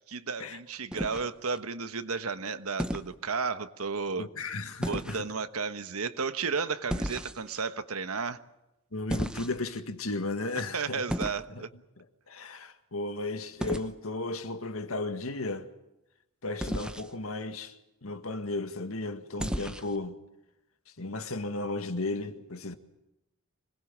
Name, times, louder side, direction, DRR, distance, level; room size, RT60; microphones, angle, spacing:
voice 1, 0.1-4.3 4.9-8.4 10.7-11.7, right 5 dB, 90° right, 1.3 m, -33 dB
sound 1, 0.9-1.6 2.8-3.1 4.8-5.2 6.9-7.6 9.1-9.8 11.1-11.5 13.6-13.9 16.6-17.1 19.4-20.0, equal, 5° right, 0.9 m, -34 dB
voice 2, 4.2-5.3 8.9-11.0 11.5-11.6 12.0-15.7 16.4-17.7 18.0-20.2 21.0-22.7, left 2 dB, 80° left, 1.8 m, -35 dB
26.0 x 20.5 x 7.5 m
head